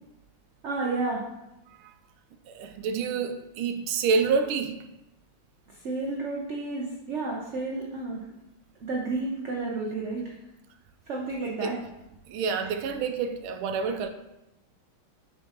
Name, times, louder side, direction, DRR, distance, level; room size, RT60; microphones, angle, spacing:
voice 1, 0.6-1.2 5.7-8.3 8.8-10.4 11.1-11.7 12.6-12.7, right 3 dB, 60° right, -2 dB, 0.7 m, -31 dB
voice 2, 2.5-4.8 11.6-11.8 12.3-14.1, right 5 dB, 90° right, 6 dB, 1.5 m, -28 dB
6.3 x 6.0 x 2.9 m, 0.92 s
omnidirectional pair, 2.2 m